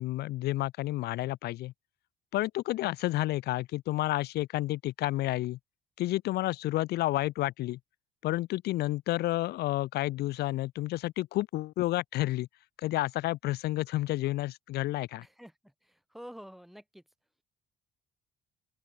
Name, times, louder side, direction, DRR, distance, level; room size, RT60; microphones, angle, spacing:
voice 1, 0.0-1.7 2.3-5.6 6.0-7.8 8.2-12.5 12.8-15.2, left 16 dB, 70° left, 0.7 m, -30 dB
voice 2, 15.2-17.0, equal, ahead, 6.5 m, -49 dB
open air
cardioid pair, 110°, 17 cm